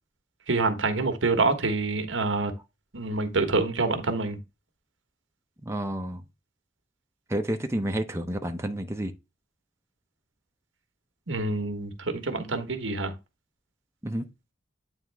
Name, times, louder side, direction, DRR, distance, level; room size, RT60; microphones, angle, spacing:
voice 1, 0.5-2.5 2.9-4.4 11.3-13.1, right 3 dB, 90° right, 1.3 m, -26 dB
voice 2, 5.6-6.2 7.3-9.1 14.0-14.3, right 1 dB, 15° right, 0.7 m, -30 dB
9.1 x 3.6 x 3.4 m
head